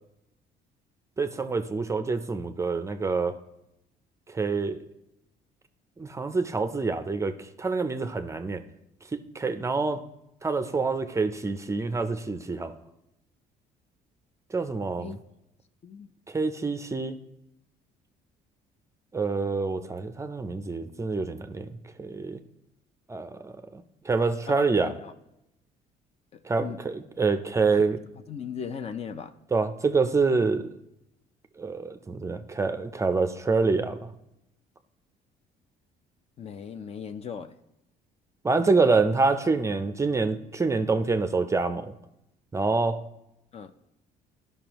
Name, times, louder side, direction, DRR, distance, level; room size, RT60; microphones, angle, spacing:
voice 1, 1.2-3.4 4.3-4.8 6.0-8.6 9.1-10.0 10.4-12.7 14.5-15.1 16.3-17.2 19.1-21.7 22.0-22.4 23.1-24.9 26.4-28.0 29.5-30.8 31.6-34.1 38.4-41.9 42.5-43.0, right 4 dB, 15° right, 9 dB, 0.5 m, -26 dB
voice 2, 24.5-25.1 26.3-26.8 27.6-27.9 28.3-29.3 36.4-37.6 43.5-43.7, left 7 dB, 40° left, 10 dB, 0.5 m, -38 dB
12.5 x 5.4 x 2.9 m, 0.85 s
cardioid pair, 110°, 17 cm